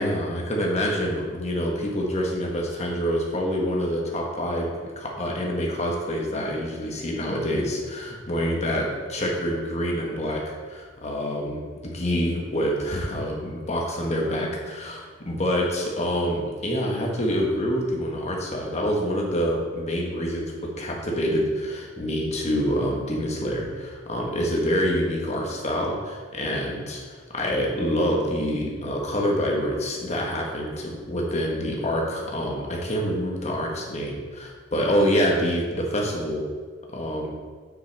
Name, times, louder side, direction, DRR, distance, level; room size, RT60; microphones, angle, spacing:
voice 1, 0.0-36.5 36.9-37.3, equal, 35° left, -1 dB, 1.3 m, -26 dB
7.6 x 6.2 x 3.4 m, 1.5 s
head